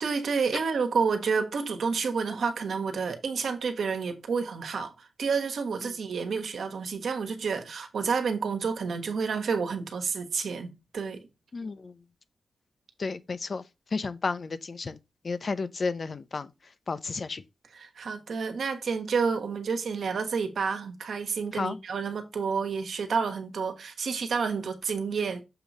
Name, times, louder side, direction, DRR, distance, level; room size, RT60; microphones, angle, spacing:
voice 1, 0.0-11.3 17.7-25.4, right 5 dB, 75° right, 1.3 m, -29 dB
voice 2, 11.5-11.9 13.0-13.6 13.9-15.0 15.2-16.5 16.9-17.4 21.5-21.8, left 4 dB, 45° left, 0.7 m, -32 dB
6.9 x 3.1 x 5.4 m
wide cardioid pair, 100°, 0 cm